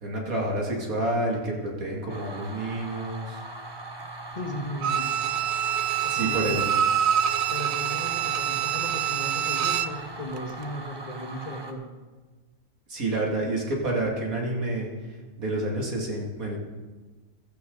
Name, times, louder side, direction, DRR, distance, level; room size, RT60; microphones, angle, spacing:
voice 1, 0.0-3.4 6.1-6.7 12.9-14.9 15.4-16.6, right 2 dB, 90° right, -1 dB, 2.9 m, -28 dB
sound 1, 2.1-11.7, right 2 dB, 20° right, 1.1 m, -40 dB
voice 2, 4.4-5.1 6.2-6.7 7.5-11.9, left 1 dB, 30° left, 1 dB, 1.7 m, -36 dB
Bowed string instrument, 4.8-10.0 10.4-10.5, right 9 dB, 65° right, 0.7 m, -26 dB
15.5 x 13.5 x 4.0 m, 1.3 s
omnidirectional pair, 1.4 m